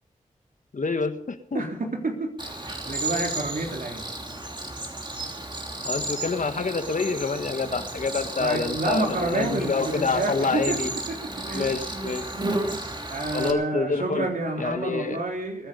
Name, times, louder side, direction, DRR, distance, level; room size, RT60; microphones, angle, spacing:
voice 1, 0.7-1.6 5.8-10.9 11.5-12.2 13.3-14.3 14.6-15.2, left 4 dB, 65° left, 9 dB, 1.6 m, -27 dB
voice 2, 1.5-4.0 8.4-10.8 11.1-11.2 11.5-11.8 13.1-15.7, right 2 dB, 75° right, 1 dB, 3.8 m, -29 dB
Cricket, 2.4-13.5, right 2 dB, 35° right, 3.1 m, -33 dB
21.5 x 10.0 x 5.3 m, 0.67 s
cardioid pair, 45°, 14 cm